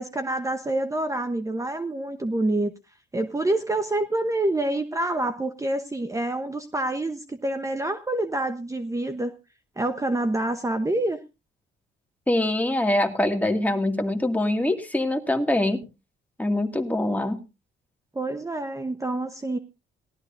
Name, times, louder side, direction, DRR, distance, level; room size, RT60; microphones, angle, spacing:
voice 1, 0.0-2.7 3.1-9.3 9.8-11.2 18.1-19.6, right 1 dB, 15° right, 9 dB, 1.0 m, -27 dB
voice 2, 12.3-15.8 16.4-17.4, left 1 dB, 10° left, 4 dB, 2.2 m, -24 dB
18.5 x 12.5 x 2.6 m, 0.28 s
cardioid pair, 90°, 20 cm